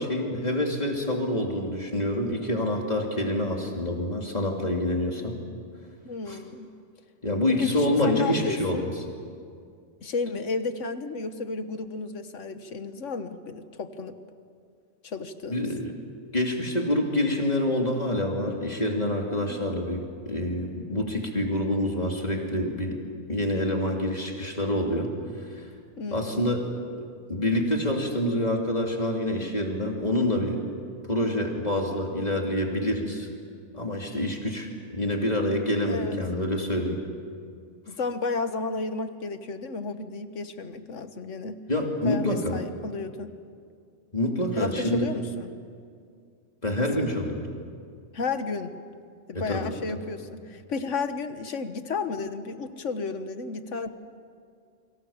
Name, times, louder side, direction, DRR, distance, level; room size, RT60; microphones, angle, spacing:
voice 1, 0.0-5.4 6.3-6.4 7.2-8.9 15.5-15.9 16.3-23.0 23.3-25.1 25.4-25.7 26.1-27.0 27.3-30.6 31.1-33.3 33.7-37.0 41.7-42.6 44.1-45.1 46.6-47.5 49.3-50.0, left 1 dB, 35° left, 1 dB, 3.0 m, -27 dB
voice 2, 6.0-6.7 7.6-8.9 10.0-14.2 15.0-15.7 19.5-19.8 26.0-26.4 35.8-36.2 37.9-41.6 42.0-43.3 44.5-45.5 46.8-47.1 48.1-48.7 49.3-53.9, left 4 dB, 90° left, 9 dB, 1.7 m, -33 dB
29.5 x 24.5 x 7.2 m, 2.2 s
omnidirectional pair, 1.2 m